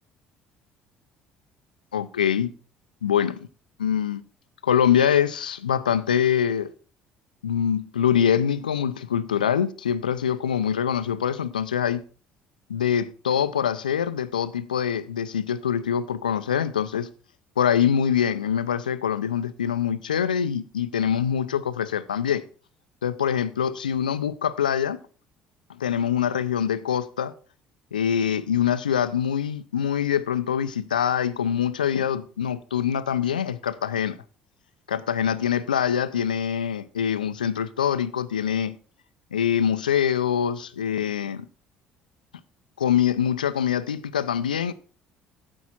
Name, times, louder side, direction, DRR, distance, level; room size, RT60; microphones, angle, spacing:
voice 1, 1.9-2.5 3.0-3.5 3.8-4.2 4.6-6.7 7.4-12.0 12.7-17.1 17.6-22.4 23.0-25.0 25.8-27.3 27.9-34.2 34.9-38.8 39.3-41.5 42.8-44.7, left 8 dB, 90° left, 0.4 m, -24 dB
9.7 x 7.2 x 4.2 m
hypercardioid pair, 60°, 4 cm